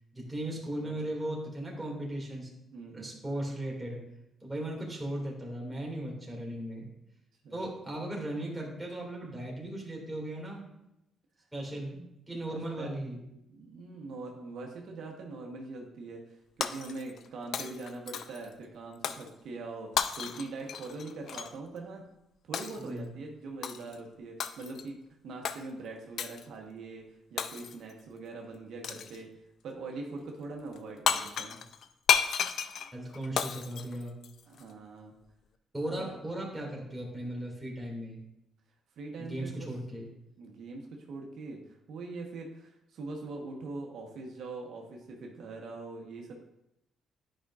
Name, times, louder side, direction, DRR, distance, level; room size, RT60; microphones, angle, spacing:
voice 1, 0.1-2.5 2.9-4.0 4.4-6.9 7.5-10.7 11.5-12.0 12.3-13.2 22.8-23.1 32.9-34.1 35.7-38.2 39.2-40.1, right 1 dB, 10° right, -3 dB, 2.2 m, -37 dB
voice 2, 2.7-3.1 6.2-6.4 7.4-7.6 11.7-12.0 12.4-12.9 13.5-22.0 22.4-25.0 25.2-31.6 34.5-35.1 36.0-36.2 39.0-39.7 40.4-46.3, right 3 dB, 70° right, 0 dB, 1.1 m, -42 dB
Shatter, 16.6-17.3 17.5-18.5 19.0-19.3 20.0-21.5 22.5-22.9 23.6-24.0 24.4-24.9 25.4-25.6 26.2-26.5 27.4-27.9 28.8-29.2 30.8-30.9 31.1-34.6, left 8 dB, 65° left, 0.4 m, -32 dB
10.0 x 5.1 x 2.4 m, 0.85 s
cardioid pair, 90°, 0 cm